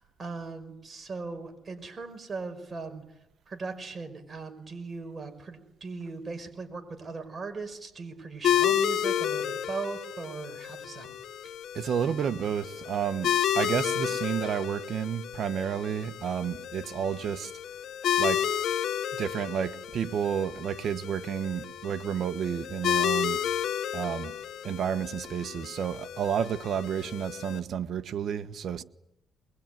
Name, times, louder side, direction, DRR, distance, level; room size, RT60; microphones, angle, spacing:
voice 1, 0.0-3.0 3.5-11.1 11.4-11.5, right 4 dB, 35° right, 5.6 m, -39 dB
sound 1, 8.4-27.6, left 10 dB, 70° left, 0.9 m, -31 dB
voice 2, 11.7-17.5 18.2-18.5 19.2-23.4 23.9-24.4 24.6-28.8, right 8 dB, 60° right, 1.4 m, -31 dB
23.0 x 22.5 x 9.4 m
cardioid pair, 90°, 0 cm